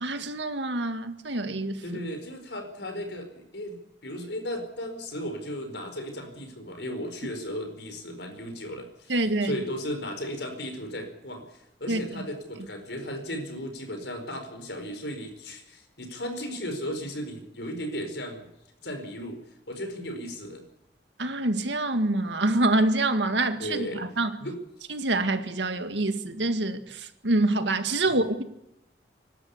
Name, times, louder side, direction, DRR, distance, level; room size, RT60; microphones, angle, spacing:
voice 1, 0.0-1.8 9.1-9.6 11.9-12.3 21.2-24.3 24.9-28.4, right 2 dB, 80° right, 1.9 m, -26 dB
voice 2, 1.8-18.5 18.8-19.4 19.7-20.6 23.6-24.0 24.4-24.6 28.0-28.1, equal, 75° left, 4.7 m, -35 dB
24.5 x 12.5 x 8.4 m
head